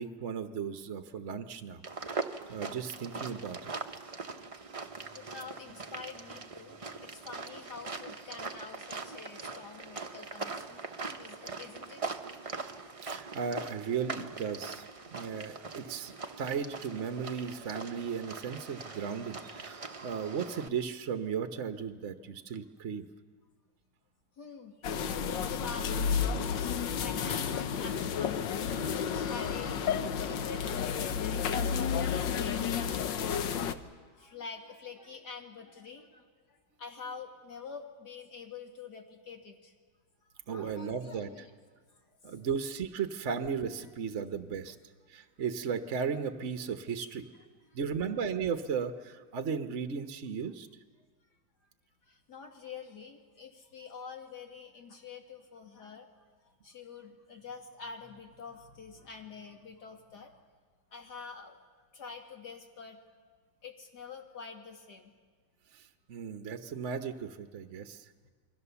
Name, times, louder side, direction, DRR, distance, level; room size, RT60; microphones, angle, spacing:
voice 1, 0.0-1.8 2.5-3.7 13.0-14.9 15.1-23.0 40.5-41.3 42.2-44.8 45.1-47.3 47.7-50.7 65.7-68.0, right 6 dB, 50° right, 8 dB, 1.1 m, -35 dB
sound 1, 1.8-20.7, right 4 dB, 30° right, 0.7 m, -42 dB
voice 2, 5.1-12.2 24.4-26.4 26.8-28.4 28.8-29.9 30.2-33.7 34.2-39.7 40.5-41.5 44.0-44.1 47.7-47.8 52.1-56.1 56.6-60.3 60.9-61.6 61.9-63.0 63.6-65.1, left 5 dB, 60° left, 3 dB, 2.7 m, -46 dB
sound 2, 24.8-33.7, left 7 dB, 80° left, 1.6 m, -31 dB
28.0 x 22.5 x 7.0 m, 1.5 s
omnidirectional pair, 2.0 m